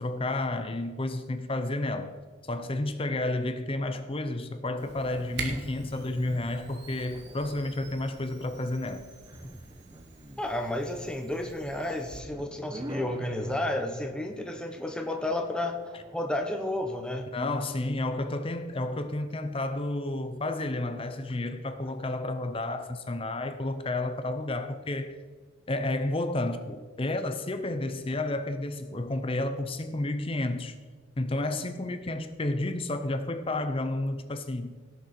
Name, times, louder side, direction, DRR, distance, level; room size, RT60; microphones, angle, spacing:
voice 1, 0.0-2.1 2.5-9.0 17.3-25.1 25.7-30.7 31.2-34.8, left 2 dB, 25° left, 0.6 m, -31 dB
sound 1, 4.8-17.5, right 1 dB, 20° right, 0.7 m, -47 dB
Camera, 4.8-12.2, right 4 dB, 50° right, 1.5 m, -45 dB
voice 2, 10.4-15.8 16.1-17.3, left 1 dB, 5° left, 1.0 m, -31 dB
17.0 x 6.8 x 4.4 m
head